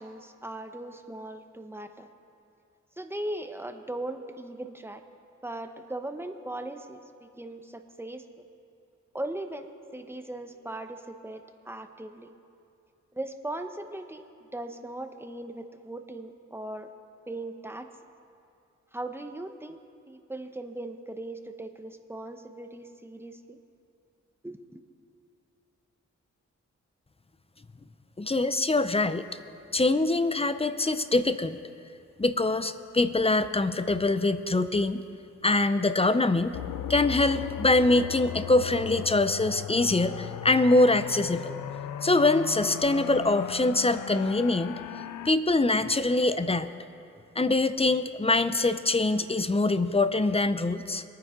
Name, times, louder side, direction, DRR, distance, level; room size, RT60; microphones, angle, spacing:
voice 1, 0.0-2.1 3.0-5.0 5.4-8.3 9.1-12.3 13.1-16.9 17.3-17.9 18.9-19.8 20.1-23.6 24.4-24.8, right 1 dB, 10° right, 7 dB, 0.9 m, -39 dB
voice 2, 28.2-29.3 29.7-31.6 32.2-35.0 35.4-36.6 36.9-41.5 42.0-44.8 45.2-46.7 47.4-51.0, left 2 dB, 20° left, 12 dB, 0.6 m, -24 dB
sound 1, 36.5-45.3, left 10 dB, 85° left, 0.5 m, -37 dB
22.5 x 9.5 x 3.7 m, 2.5 s
cardioid pair, 60°, 30 cm